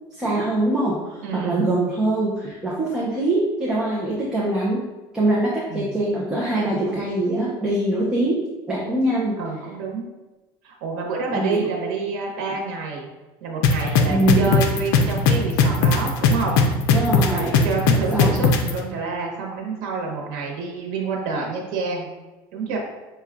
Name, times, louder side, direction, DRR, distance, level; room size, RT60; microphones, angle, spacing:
voice 1, 0.1-4.8 5.1-8.4 8.7-9.4 11.3-11.7 14.1-14.5 16.9-17.6 18.1-18.3 22.7-22.8, right 1 dB, 5° right, -6 dB, 0.6 m, -23 dB
voice 2, 1.2-1.6 5.7-6.0 9.4-10.1 10.6-13.1 13.4-16.6 17.3-22.1 22.5-22.8, right 4 dB, 90° right, 0 dB, 1.0 m, -28 dB
sound 1, 13.6-18.7, left 5 dB, 80° left, 0.5 m, -17 dB
5.9 x 2.3 x 3.5 m, 1.1 s
cardioid pair, 165°, 10 cm